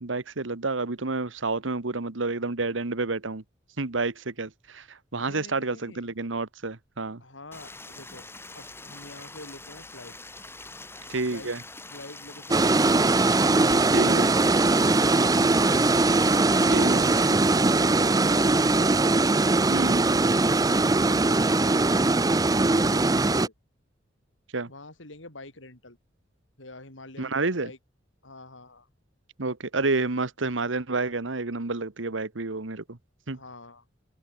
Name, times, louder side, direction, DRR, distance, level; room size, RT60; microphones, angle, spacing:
voice 1, 0.0-3.4 3.8-7.2 11.1-11.6 13.9-14.3 16.7-17.1 19.7-20.0 24.5-24.7 27.2-27.7 29.4-33.0 33.3-33.4, right 3 dB, 85° right, 1.4 m, -29 dB
voice 2, 5.2-6.1 7.2-8.3 8.5-10.2 11.3-11.5 11.9-13.1 19.8-20.2 20.7-22.4 22.7-23.5 24.7-26.0 26.6-27.8 28.2-28.9 33.3-33.8, left 2 dB, 90° left, 6.5 m, -46 dB
Stream, 7.5-17.3, left 2 dB, 15° left, 7.0 m, -44 dB
sound 1, 12.5-23.5, right 2 dB, 20° right, 0.6 m, -21 dB
open air
head